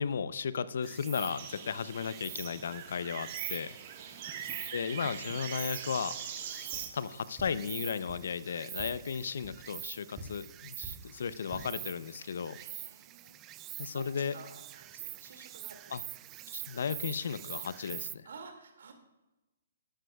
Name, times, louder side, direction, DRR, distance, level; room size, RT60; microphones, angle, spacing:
voice 1, 0.0-3.8 4.7-6.1 6.9-12.6 13.8-14.3 15.9-16.0 16.5-18.3, left 6 dB, 70° left, 16 dB, 0.6 m, -35 dB
Insect, 0.8-18.2, right 16 dB, 25° right, 0.3 m, -45 dB
sound 1, 1.2-6.9, right 8 dB, 45° right, 1.4 m, -42 dB
voice 2, 4.0-4.3 12.5-13.6 13.9-16.0 18.2-18.9, right 5 dB, 70° right, 5 dB, 2.2 m, -51 dB
sound 2, 6.7-6.8 7.3-7.5 8.0-8.2 8.7-8.9 9.4-9.5 10.1-10.2 10.8-10.9 11.3-11.6, right 2 dB, 10° right, 2.5 m, -45 dB
12.5 x 11.5 x 2.3 m, 1.1 s
hypercardioid pair, 140°, 0 cm